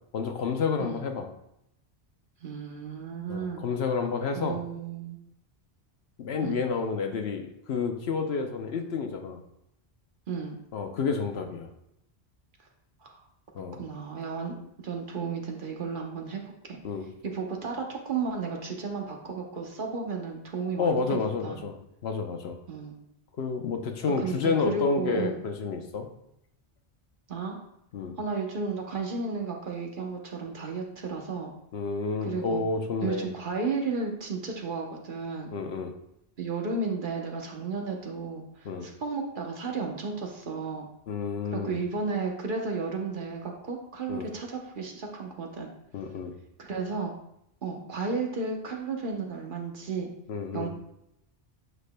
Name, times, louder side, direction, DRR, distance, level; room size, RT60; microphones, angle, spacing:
voice 1, 0.1-1.3 3.3-4.6 6.2-9.4 10.7-11.7 13.5-13.8 16.8-17.0 20.8-21.8 22.0-22.6 23.4-26.1 27.9-28.1 31.7-33.3 35.5-35.9 38.6-38.9 41.1-41.8 44.1-44.3 45.9-46.3 50.3-50.7, left 5 dB, 80° left, 5 dB, 1.0 m, -30 dB
voice 2, 2.4-3.6 4.3-5.2 6.4-6.6 10.3-10.6 13.0-13.2 13.8-16.8 17.2-21.1 21.4-21.6 22.7-22.9 24.2-25.4 27.3-27.6 28.2-31.5 32.2-32.6 33.0-35.5 36.4-40.9 41.5-45.7 46.6-47.1 47.6-50.1 50.5-50.7, right 4 dB, 55° right, 2 dB, 1.0 m, -33 dB
8.0 x 5.6 x 2.2 m, 0.78 s
omnidirectional pair, 1.1 m